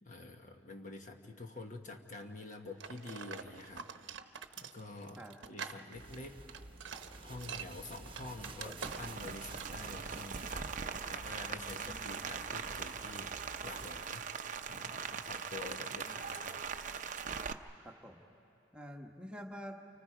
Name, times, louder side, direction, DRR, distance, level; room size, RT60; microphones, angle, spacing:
voice 1, 0.0-3.9 4.6-6.4 7.2-10.7 11.1-14.2 14.7-16.6, left 2 dB, 40° left, 4 dB, 1.3 m, -48 dB
sound 1, 2.8-9.3 9.6-9.8, right 6 dB, 85° right, 0.9 m, -46 dB
sound 2, 5.9-14.0, right 2 dB, 30° right, 1.1 m, -51 dB
Rain, 8.9-17.5, right 6 dB, 45° right, 0.7 m, -41 dB
voice 2, 11.5-12.2 15.6-15.8 16.1-16.2 17.8-18.2 18.7-19.8, equal, 5° right, 1 dB, 1.3 m, -48 dB
30.0 x 29.5 x 5.0 m, 2.8 s
head